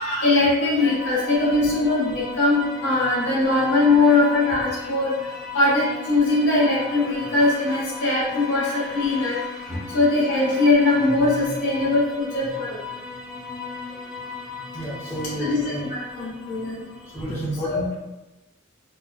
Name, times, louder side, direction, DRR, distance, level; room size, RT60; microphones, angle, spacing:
voice 1, 0.0-12.8 15.4-16.8 17.6-17.8, left 2 dB, 65° left, -9 dB, 1.3 m, -21 dB
sound 1, 0.8-17.3, left 4 dB, ahead, 0.6 m, -37 dB
voice 2, 14.7-15.8 17.1-17.9, equal, 15° left, -8 dB, 1.1 m, -30 dB
4.6 x 2.3 x 2.5 m, 1.0 s
head